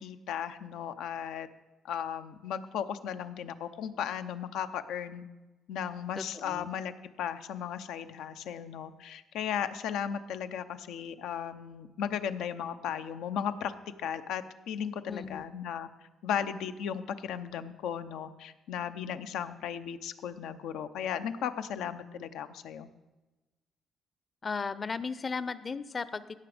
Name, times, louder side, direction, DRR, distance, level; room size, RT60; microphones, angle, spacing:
voice 1, 0.0-1.5 1.8-5.2 5.7-6.9 7.2-13.7 14.0-15.9 16.2-22.9, left 8 dB, 85° left, 10 dB, 0.7 m, -36 dB
voice 2, 6.2-6.7 15.1-15.5 24.4-26.4, left 5 dB, 35° left, 15 dB, 0.6 m, -36 dB
16.5 x 6.2 x 5.0 m, 1.1 s
cardioid pair, 90°, 0 cm